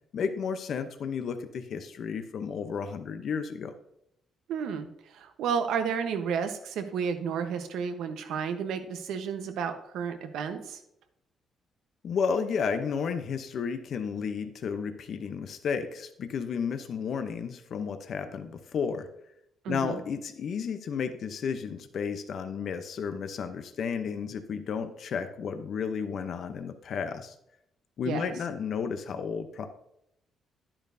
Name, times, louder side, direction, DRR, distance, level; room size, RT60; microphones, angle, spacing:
voice 1, 0.1-3.7 12.0-19.1 19.7-27.3 28.0-29.7, left 6 dB, 60° left, 8 dB, 0.7 m, -32 dB
voice 2, 4.5-4.9 5.1-10.8 19.6-20.0 28.0-28.3, right 6 dB, 80° right, 7 dB, 1.0 m, -32 dB
10.5 x 8.7 x 2.7 m, 0.78 s
cardioid pair, 90°, 0 cm